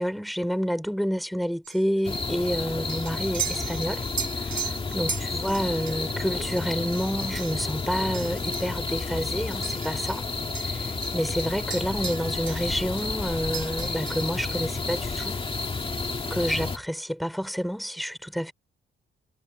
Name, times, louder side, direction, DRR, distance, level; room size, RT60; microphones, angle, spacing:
voice 1, 0.0-4.0 4.4-10.3 10.5-15.4 16.3-18.5, equal, ahead, 3.8 m, -29 dB
sound 1, 1.6-10.3 10.5-12.7 13.0-14.5, right 7 dB, 50° right, 3.1 m, -38 dB
sound 2, 2.0-16.8, left 3 dB, 30° left, 2.0 m, -31 dB
cardioid pair, 110°, 19 cm